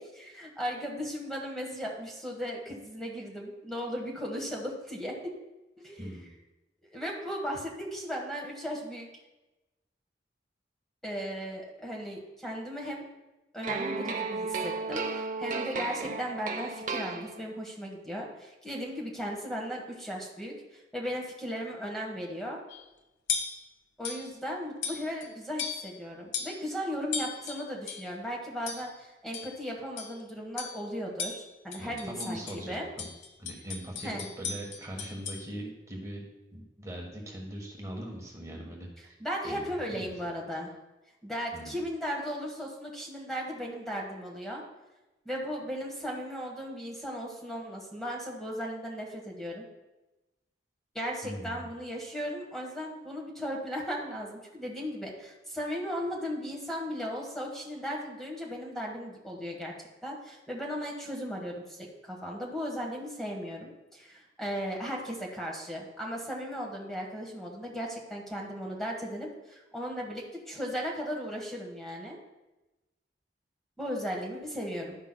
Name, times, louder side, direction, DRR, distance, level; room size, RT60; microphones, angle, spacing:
voice 1, 0.0-5.3 5.8-6.1 6.9-9.1 11.0-13.0 13.5-22.6 24.0-32.9 34.0-34.3 39.2-40.7 41.2-44.6 45.2-49.7 50.9-59.7 60.0-72.2 73.8-75.0, equal, ahead, -2 dB, 1.3 m, -36 dB
sound 1, 13.6-17.7, right 4 dB, 45° right, 0.7 m, -34 dB
sound 2, 22.7-22.9 23.3-23.7 24.0-24.3 24.8-25.3 25.6-26.0 26.3-26.6 27.1-28.1 28.7-29.0 29.3-29.6 30.0-30.2 30.6-30.8 31.2-32.6 33.0-35.4, left 6 dB, 75° left, 1.0 m, -37 dB
voice 2, 31.8-33.1 33.4-36.2 36.5-39.2 39.4-39.6 39.8-40.1 41.5-41.8 51.2-51.7, right 1 dB, 15° right, -1 dB, 1.3 m, -41 dB
12.0 x 10.0 x 2.2 m, 1.0 s
head